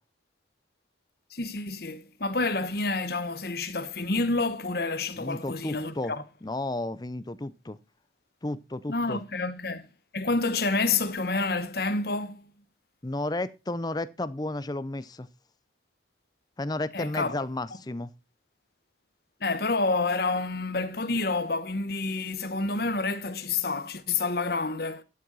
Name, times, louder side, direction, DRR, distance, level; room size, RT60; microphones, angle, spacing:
voice 1, 1.3-6.2 8.9-9.8 10.1-12.5 16.9-17.3 19.4-25.0, left 3 dB, 55° left, 1.2 m, -28 dB
voice 2, 5.2-6.1 6.4-7.8 8.4-9.2 13.0-15.3 16.6-18.1, left 2 dB, 20° left, 0.6 m, -32 dB
13.0 x 7.6 x 4.0 m
head